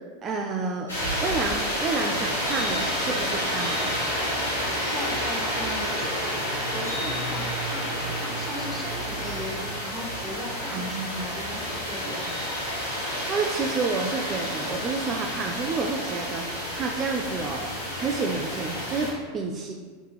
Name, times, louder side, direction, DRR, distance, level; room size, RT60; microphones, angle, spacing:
voice 1, 0.2-0.9 1.2-3.9 10.7-11.3 13.3-17.7 18.0-19.7, right 4 dB, 35° right, 2 dB, 0.3 m, -29 dB
sound 1, 0.9-19.1, equal, 90° left, 1.3 m, -29 dB
voice 2, 4.9-6.3 6.7-12.3, left 1 dB, 5° left, -3 dB, 0.8 m, -38 dB
3.3 x 3.1 x 3.0 m, 1.4 s
figure-of-eight pair, 85°, 0 cm